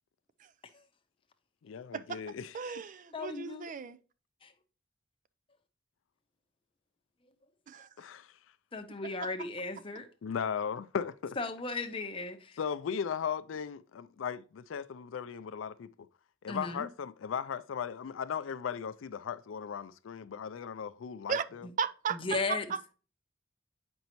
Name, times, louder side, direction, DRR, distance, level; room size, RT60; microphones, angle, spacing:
voice 1, 1.6-2.6 8.0-8.3 10.2-11.4 12.6-15.9 16.4-21.7, left 7 dB, 75° left, 0.4 m, -37 dB
voice 2, 2.5-4.0 7.7-7.9 9.2-9.3 21.3-21.5 21.8-22.2 22.5-22.9, right 6 dB, 40° right, 0.4 m, -35 dB
voice 3, 3.1-3.7 4.4-4.5 8.7-10.1 11.4-12.5 16.5-16.9 22.1-22.7, left 3 dB, 30° left, 0.8 m, -36 dB
7.9 x 5.3 x 3.0 m
head